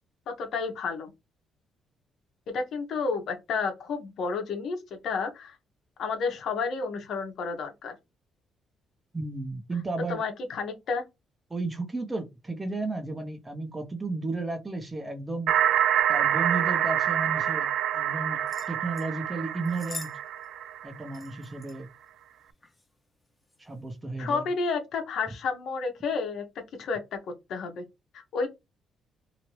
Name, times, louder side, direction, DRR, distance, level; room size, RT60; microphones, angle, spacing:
voice 1, 0.3-1.1 2.5-5.6 6.0-7.9 10.1-11.0 24.2-26.4 26.8-27.2 27.5-27.8 28.1-28.5, left 4 dB, 70° left, 1.1 m, -31 dB
voice 2, 9.1-10.2 11.5-15.5 16.1-20.1 20.8-21.9 23.6-24.4, right 3 dB, 20° right, 0.9 m, -33 dB
sound 1, 15.5-21.2, right 10 dB, 75° right, 0.3 m, -26 dB
sound 2, 18.5-19.1 19.7-20.2 20.4-20.5 21.1-21.8 22.6-22.9 23.4-23.6, left 3 dB, 15° left, 1.0 m, -43 dB
2.9 x 2.7 x 3.1 m
cardioid pair, 90°, 0 cm